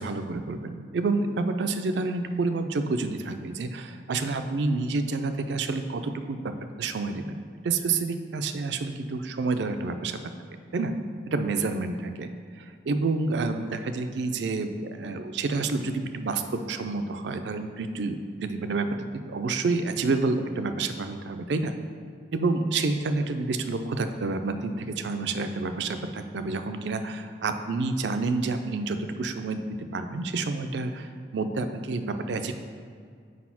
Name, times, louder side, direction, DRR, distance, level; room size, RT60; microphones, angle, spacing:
voice 1, 0.0-6.5 6.8-7.4 7.6-10.2 10.7-10.9 11.3-12.3 12.6-18.9 19.1-21.7 22.3-29.6 29.9-32.5, right 3 dB, 70° right, 8 dB, 0.4 m, -29 dB
4.8 x 4.1 x 5.8 m, 2.1 s
head